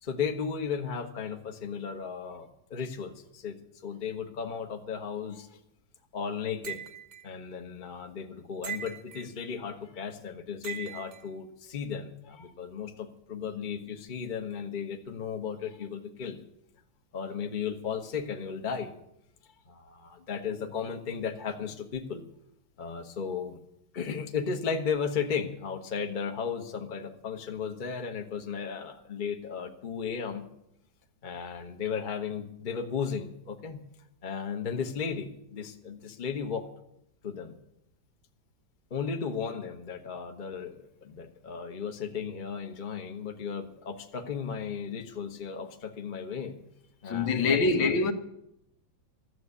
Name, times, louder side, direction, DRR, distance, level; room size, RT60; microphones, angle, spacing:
voice 1, 0.0-3.6 3.8-5.6 6.1-6.8 7.2-16.4 17.1-18.9 19.7-22.2 22.8-23.6 23.9-30.5 31.2-33.8 34.2-36.6 37.2-37.6 38.9-46.6 47.0-47.9, left 6 dB, 30° left, 1.0 m, -35 dB
sound 1, 6.6-7.2 8.6-9.3 10.6-11.2, right 9 dB, 45° right, 1.2 m, -39 dB
voice 2, 47.1-48.1, left 3 dB, 80° left, 1.9 m, -24 dB
13.0 x 7.7 x 9.6 m
omnidirectional pair, 2.1 m